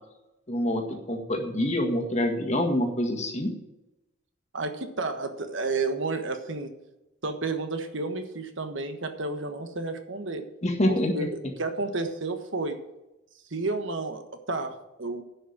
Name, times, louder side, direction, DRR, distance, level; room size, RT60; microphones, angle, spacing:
voice 1, 0.5-3.5 10.6-11.3, left 1 dB, 35° left, 2 dB, 1.8 m, -26 dB
voice 2, 4.5-6.7 7.2-10.4 11.1-12.8 13.5-14.2 14.5-15.2, right 3 dB, 65° right, 7 dB, 1.3 m, -31 dB
10.5 x 6.2 x 8.7 m, 0.95 s
head